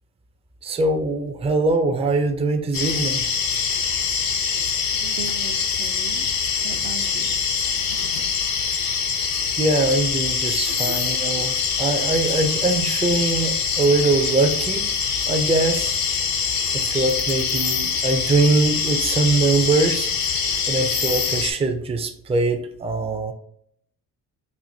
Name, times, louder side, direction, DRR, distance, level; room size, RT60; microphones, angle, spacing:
voice 1, 0.6-3.2 9.5-14.9 15.3-16.0 16.7-20.1 20.7-23.3, right 3 dB, 15° right, 6 dB, 0.4 m, -22 dB
sound 1, 2.7-21.5, left 6 dB, 65° left, 0.6 m, -24 dB
voice 2, 5.0-6.2 6.6-7.3 10.7-11.0, right 7 dB, 70° right, 9 dB, 0.6 m, -37 dB
4.3 x 2.5 x 2.6 m, 0.68 s
cardioid pair, 115°, 38 cm